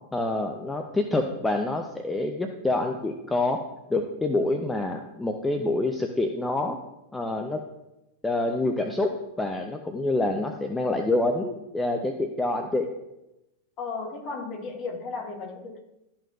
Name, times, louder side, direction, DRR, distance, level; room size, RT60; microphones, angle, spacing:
voice 1, 0.1-3.6 3.9-6.8 7.1-7.6 8.2-9.1 9.4-12.9, left 2 dB, 10° left, 4 dB, 0.6 m, -27 dB
voice 2, 13.8-15.8, left 4 dB, 35° left, 0 dB, 1.9 m, -34 dB
12.5 x 4.5 x 2.7 m, 0.92 s
figure-of-eight pair, 90°, 0 cm